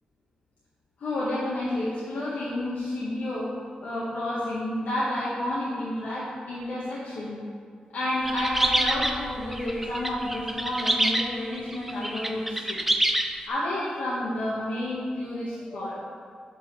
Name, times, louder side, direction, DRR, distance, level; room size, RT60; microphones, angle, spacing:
voice 1, 1.0-7.5 7.9-12.8 13.4-16.0, left 1 dB, 75° left, -8 dB, 1.5 m, -30 dB
sound 1, 8.2-13.4, right 1 dB, 10° right, 0.7 m, -27 dB
5.6 x 5.5 x 6.1 m, 2.1 s
cardioid pair, 55°, 3 cm